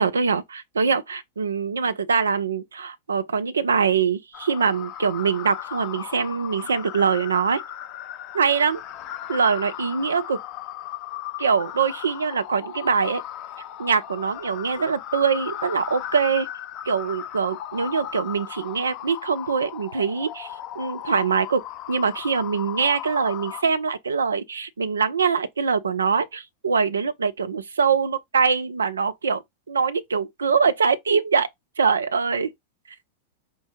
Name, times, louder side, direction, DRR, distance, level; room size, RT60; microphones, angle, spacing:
voice 1, 0.0-7.6 8.3-8.8 9.3-10.4 11.4-13.2 13.8-16.5 16.9-29.4 29.7-31.5 31.8-32.5, right 5 dB, 70° right, 0.5 m, -23 dB
sound 1, 4.3-23.6, left 11 dB, 40° left, 0.4 m, -36 dB
4.5 x 2.6 x 3.5 m
figure-of-eight pair, 90°, 0 cm